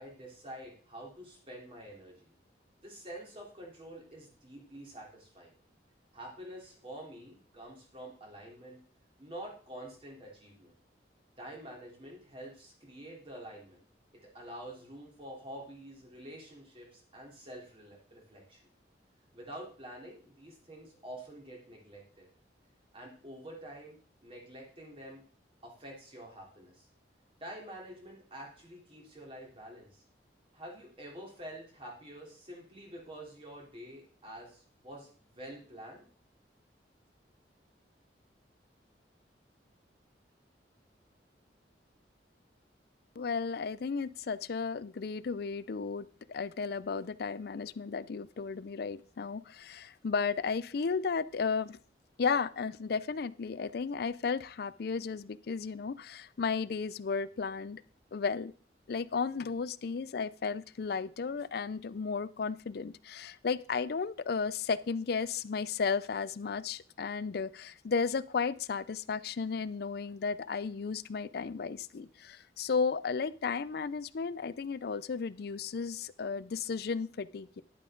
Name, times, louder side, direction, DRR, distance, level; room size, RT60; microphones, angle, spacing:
voice 1, 0.0-2.3 2.8-5.5 6.1-8.8 9.2-10.7 11.4-13.8 14.3-18.6 19.3-22.3 22.9-25.2 25.6-26.9 27.4-30.0 30.5-36.1, right 1 dB, 30° right, -1 dB, 3.5 m, -47 dB
voice 2, 43.2-51.8 52.2-57.8 58.1-58.5 58.9-77.6, left 5 dB, 60° left, 18 dB, 0.4 m, -34 dB
11.5 x 8.5 x 3.8 m, 0.42 s
head